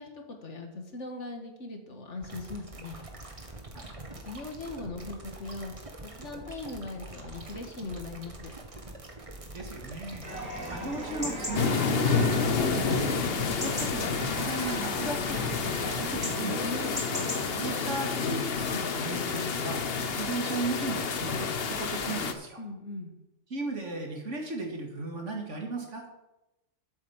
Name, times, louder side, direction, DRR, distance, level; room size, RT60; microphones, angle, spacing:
voice 1, 0.0-3.0 4.3-5.7 6.0-8.5 16.6-17.1 22.6-23.2, left 2 dB, 75° left, 4 dB, 2.0 m, -40 dB
sound 1, 2.2-16.3, right 2 dB, 30° right, 1.4 m, -45 dB
voice 2, 9.5-10.3 10.6-13.2 13.6-16.7 17.5-22.6 23.5-26.0, right 3 dB, 85° right, 2 dB, 2.4 m, -36 dB
Chatter / Livestock farm animals working animals / Chirp tweet, 10.2-17.4, equal, 5° right, 4.7 m, -37 dB
sound 2, 11.5-22.3, left 5 dB, 55° left, 1.1 m, -29 dB
8.2 x 7.9 x 7.2 m, 0.96 s
omnidirectional pair, 1.2 m